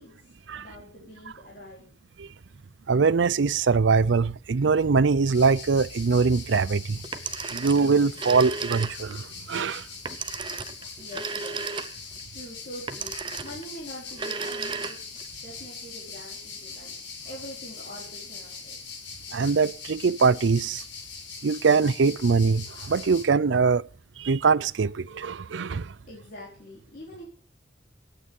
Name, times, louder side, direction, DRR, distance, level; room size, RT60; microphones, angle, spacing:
voice 1, 0.0-1.9 11.0-17.0 17.2-18.8 26.0-27.3, equal, 50° left, 4.2 m, -44 dB
voice 2, 2.9-7.0 7.5-9.9 19.3-20.8 21.4-23.8 24.2-25.9, right 4 dB, 85° right, 0.5 m, -22 dB
sound 1, 5.3-23.2, left 5 dB, 85° left, 4.8 m, -42 dB
Telephone, 7.0-9.2 10.1-12.2 12.9-13.7 14.1-15.3, right 5 dB, 25° right, 0.8 m, -34 dB
17.0 x 9.1 x 5.4 m
head